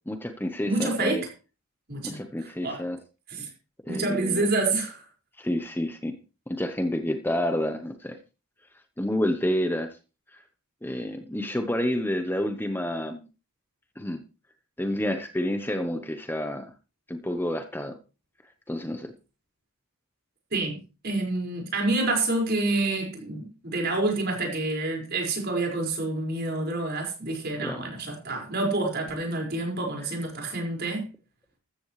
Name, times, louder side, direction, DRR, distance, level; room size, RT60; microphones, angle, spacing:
voice 1, 0.1-1.2 2.0-3.0 3.9-4.4 5.4-6.2 6.5-8.2 9.0-10.0 10.3-10.4 10.8-13.3 14.0-14.2 14.8-16.7 17.1-18.0 18.7-19.1 27.6-27.9, left 1 dB, 10° left, 0.9 m, -29 dB
voice 2, 0.6-1.3 1.9-2.2 2.4-2.8 3.3-3.5 3.9-5.0 20.5-20.8 21.0-31.0, right 2 dB, 50° right, 5.3 m, -28 dB
14.0 x 14.0 x 3.2 m
head